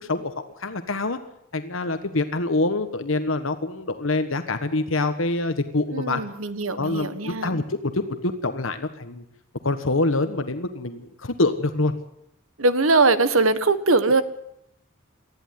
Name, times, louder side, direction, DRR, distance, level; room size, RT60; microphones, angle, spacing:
voice 1, 0.0-0.3 0.6-1.2 1.5-6.2 6.7-9.2 9.6-12.0, left 2 dB, 70° left, 8 dB, 1.4 m, -25 dB
voice 2, 5.9-7.5 12.6-14.2, right 3 dB, 80° right, 13 dB, 1.5 m, -21 dB
19.5 x 14.0 x 9.5 m, 0.77 s
head